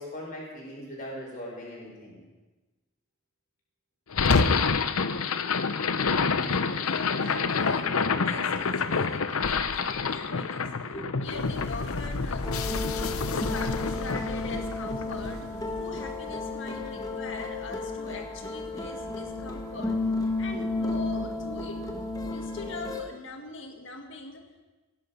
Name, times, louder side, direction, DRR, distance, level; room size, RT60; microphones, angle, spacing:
voice 1, 0.0-2.2 10.0-10.2 10.8-11.4, equal, 40° left, -3 dB, 5.3 m, -40 dB
sound 1, 4.1-16.3, left 5 dB, 85° left, 0.8 m, -28 dB
voice 2, 6.5-10.9 11.2-12.5 12.9-20.0 20.4-21.9 22.3-24.6, left 3 dB, 60° left, 4 dB, 1.9 m, -41 dB
sound 2, 12.4-23.0, left 2 dB, 15° left, 1.3 m, -33 dB
17.5 x 11.0 x 5.4 m, 1.2 s
head